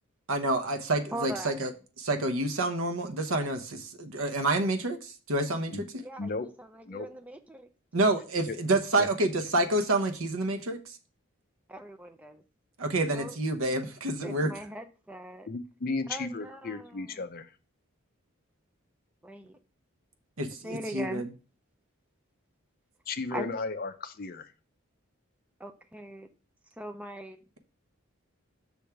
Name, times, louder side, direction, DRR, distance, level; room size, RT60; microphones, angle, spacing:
voice 1, 0.3-1.7 2.0-5.9 7.9-11.0 12.8-14.5 20.4-21.3, right 2 dB, 80° right, 6 dB, 0.9 m, -28 dB
voice 2, 1.1-1.7 6.0-6.7 6.9-7.7 8.1-8.2 11.7-12.4 13.1-13.4 14.2-15.5 16.1-17.0 19.2-19.6 20.6-21.2 23.3-23.5 25.6-26.3 26.8-27.4, right 1 dB, 5° right, 6 dB, 0.4 m, -40 dB
voice 3, 15.5-17.5 23.1-24.5, left 3 dB, 45° left, 10 dB, 0.5 m, -34 dB
6.3 x 3.5 x 5.7 m, 0.34 s
head